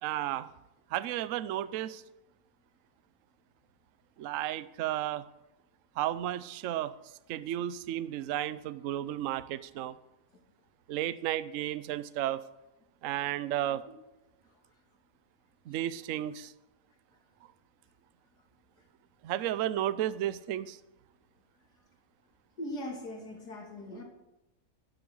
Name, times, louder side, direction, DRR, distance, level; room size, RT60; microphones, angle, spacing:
voice 1, 0.0-0.5 0.9-2.0 4.2-5.3 6.0-6.9 7.3-10.0 10.9-12.4 13.0-13.8 15.7-16.5 19.2-20.8, right 12 dB, 65° right, 15 dB, 0.9 m, -33 dB
voice 2, 22.6-24.0, left 1 dB, 80° left, 1 dB, 3.4 m, -40 dB
12.0 x 11.5 x 6.4 m, 0.94 s
omnidirectional pair, 1.7 m